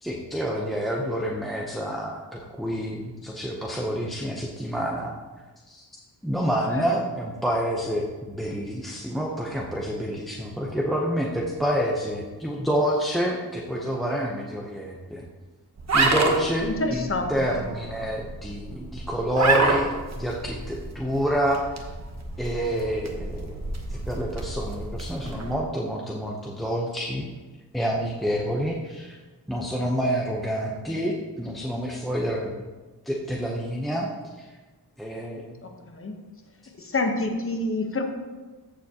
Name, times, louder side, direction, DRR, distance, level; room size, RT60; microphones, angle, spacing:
voice 1, 0.0-5.1 5.7-5.8 6.2-15.2 15.9-19.9 20.2-21.8 22.4-23.7 24.1-27.3 27.7-29.2 29.5-32.5 33.1-34.1 34.4-34.5 35.0-35.6, equal, ahead, -2 dB, 0.7 m, -28 dB
sound 1, 15.8-25.5, right 3 dB, 45° right, 1.1 m, -29 dB
voice 2, 16.6-17.6 35.6-36.2 36.9-38.1, left 2 dB, 35° left, 4 dB, 1.0 m, -28 dB
14.0 x 7.0 x 2.9 m, 1.3 s
wide cardioid pair, 165°, 38 cm